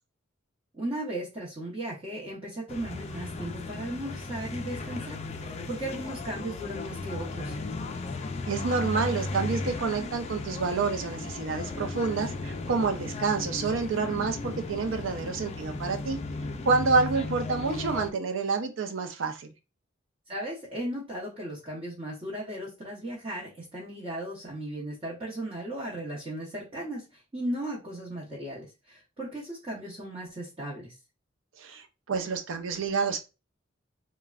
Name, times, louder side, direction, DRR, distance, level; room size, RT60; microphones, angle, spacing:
voice 1, 0.7-7.6 20.3-30.9, right 1 dB, 30° right, 0.9 m, -36 dB
sound 1, 2.7-18.1, left 3 dB, 35° left, 0.4 m, -36 dB
voice 2, 8.5-16.2 16.6-19.5 31.6-33.2, right 4 dB, 80° right, 0.5 m, -28 dB
3.3 x 2.2 x 2.4 m
head